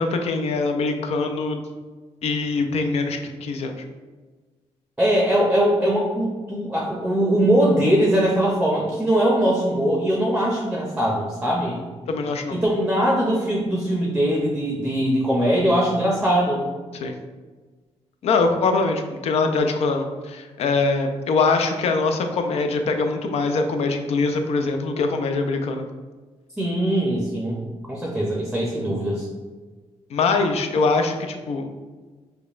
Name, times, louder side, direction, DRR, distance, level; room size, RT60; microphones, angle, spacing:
voice 1, 0.0-1.6 2.2-3.8 12.1-12.6 17.0-17.2 18.2-25.8 30.1-31.7, left 3 dB, 70° left, 5 dB, 0.4 m, -23 dB
voice 2, 5.0-11.8 12.5-16.6 26.6-27.6 27.9-29.3, right 1 dB, 10° right, -3 dB, 0.6 m, -21 dB
5.0 x 2.2 x 2.4 m, 1.3 s
cardioid pair, 90°, 11 cm